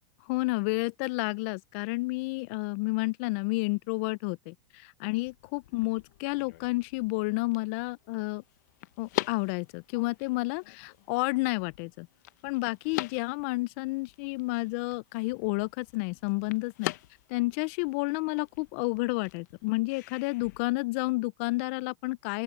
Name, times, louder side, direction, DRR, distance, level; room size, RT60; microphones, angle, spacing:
voice 1, 0.3-8.4 9.0-12.1 12.4-16.9 17.3-22.4, left 24 dB, 45° left, 0.4 m, -30 dB
sound 1, 5.1-20.6, left 17 dB, 65° left, 0.8 m, -43 dB
open air
supercardioid pair, 165°, 10 cm